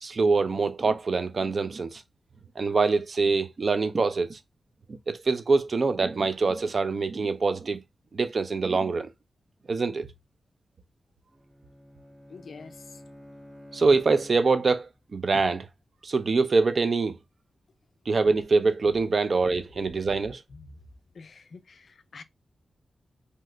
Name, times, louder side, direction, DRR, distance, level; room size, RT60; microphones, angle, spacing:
voice 1, 0.0-2.0 2.6-4.4 5.1-7.8 8.1-9.1 9.7-10.1 13.7-15.7 16.0-17.2 18.1-20.4, right 4 dB, 40° right, 0.4 m, -24 dB
Bowed string instrument, 11.3-14.9, left 1 dB, 20° right, 0.7 m, -50 dB
voice 2, 12.3-13.0 20.5-20.8 21.1-22.2, left 4 dB, 55° left, 0.4 m, -47 dB
2.8 x 2.4 x 3.1 m
wide cardioid pair, 175°, 0 cm